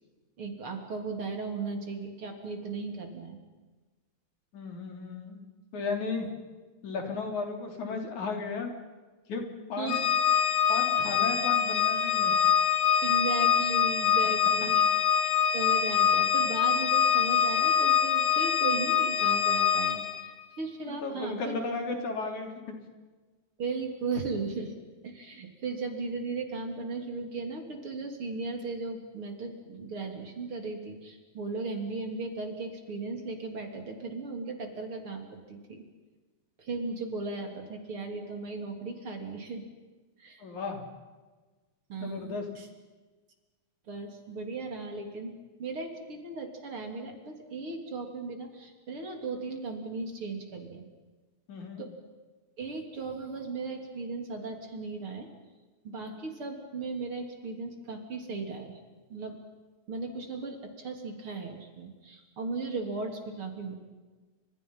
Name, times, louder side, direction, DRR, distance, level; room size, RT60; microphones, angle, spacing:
voice 1, 0.4-3.4 6.2-6.3 9.8-10.0 13.0-14.9 15.5-20.3 20.6-21.5 23.6-24.7 25.0-35.8 36.6-39.6 40.2-40.4 41.9-42.7 43.9-45.3 45.6-50.8 51.8-52.0 52.6-55.3 55.8-58.8 59.1-59.4 59.9-63.7, right 3 dB, 45° right, 4 dB, 4.0 m, -36 dB
voice 2, 4.5-5.4 5.7-6.3 6.8-8.7 9.3-9.4 9.7-10.0 10.7-12.3 20.9-22.5 40.4-40.8 42.0-42.5 51.5-51.8, left 4 dB, 75° left, 4 dB, 4.9 m, -34 dB
Organ, 9.9-20.3, left 8 dB, 50° left, 1.8 m, -24 dB
30.0 x 27.5 x 5.6 m, 1.3 s
omnidirectional pair, 3.4 m